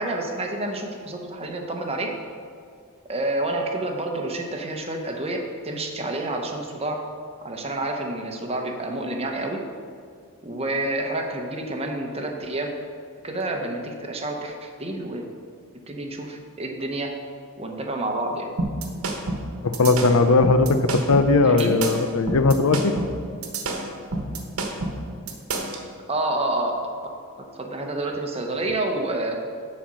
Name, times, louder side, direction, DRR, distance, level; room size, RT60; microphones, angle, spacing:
voice 1, 0.0-2.1 3.1-7.0 7.4-9.6 10.4-12.7 13.2-15.3 15.9-17.1 17.6-18.5 21.4-21.8 26.1-26.7 27.4-29.4, right 2 dB, 30° right, 2 dB, 0.9 m, -28 dB
sound 1, 18.6-25.8, right 2 dB, 85° right, 1.1 m, -29 dB
voice 2, 19.6-22.9, left 3 dB, 80° left, 9 dB, 0.6 m, -18 dB
9.9 x 4.3 x 6.3 m, 2.2 s
head